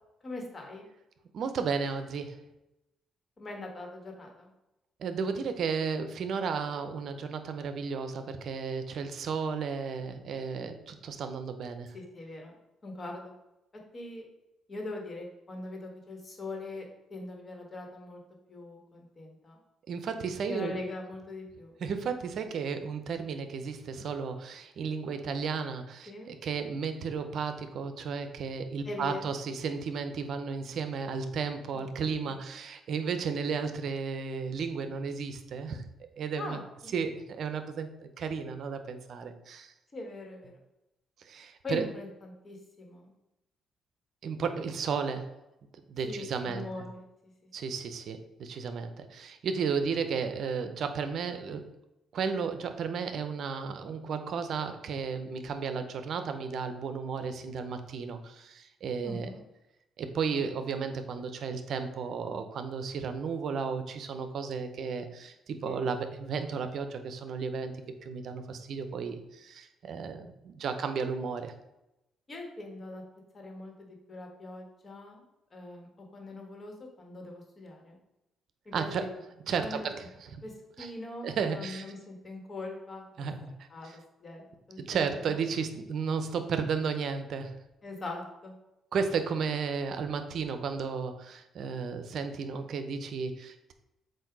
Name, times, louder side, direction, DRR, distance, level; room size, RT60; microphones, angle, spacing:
voice 1, 0.2-0.9 3.4-4.5 11.9-12.5 12.8-13.3 13.9-14.2 14.7-16.8 17.1-18.2 18.5-19.6 20.4-21.7 26.1-26.3 28.8-29.4 31.7-31.8 32.3-32.4 36.4-36.6 39.9-40.5 41.6-43.1 46.0-47.3 59.0-59.4 65.6-65.8 72.3-73.0 73.3-75.2 75.5-78.0 78.6-79.1 79.6-79.9 80.4-80.5 80.8-83.3 83.7-83.9 84.2-84.4 84.7-85.4 87.8-88.5, left 2 dB, 35° left, 1 dB, 1.6 m, -41 dB
voice 2, 1.3-2.4 5.0-11.9 19.9-20.8 21.8-35.8 36.2-36.6 36.9-37.9 38.2-39.7 41.2-41.8 44.2-45.3 45.9-46.7 47.5-51.7 52.1-59.3 60.0-67.8 68.0-71.5 78.7-79.1 79.5-80.4 80.8-80.9 81.2-81.8 83.2-83.5 83.8-84.0 84.9-87.6 88.9-93.7, right 5 dB, 65° right, 8 dB, 0.6 m, -33 dB
7.6 x 2.7 x 4.7 m, 0.92 s
cardioid pair, 90°, 0 cm